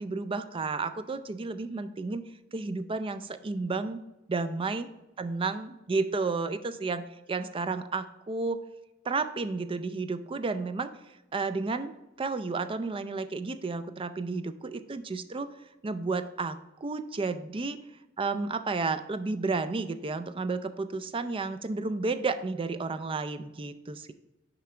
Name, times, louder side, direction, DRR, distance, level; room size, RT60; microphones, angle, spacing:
voice 1, 0.0-2.2 2.5-4.0 4.3-4.9 5.2-7.0 7.3-8.6 9.0-10.9 11.3-15.5 15.8-17.8 18.2-24.1, right 3 dB, 25° right, 10 dB, 0.4 m, -32 dB
6.8 x 4.8 x 3.2 m, 0.97 s
head